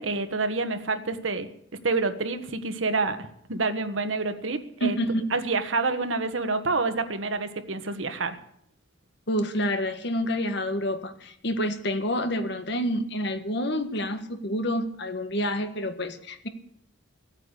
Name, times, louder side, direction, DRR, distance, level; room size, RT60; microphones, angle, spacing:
voice 1, 0.0-1.5 1.8-3.2 3.5-5.0 5.3-8.4, right 3 dB, 80° right, 8 dB, 1.4 m, -27 dB
voice 2, 4.8-5.2 9.3-16.5, equal, 60° left, 8 dB, 1.6 m, -28 dB
16.0 x 9.1 x 8.2 m, 0.70 s
head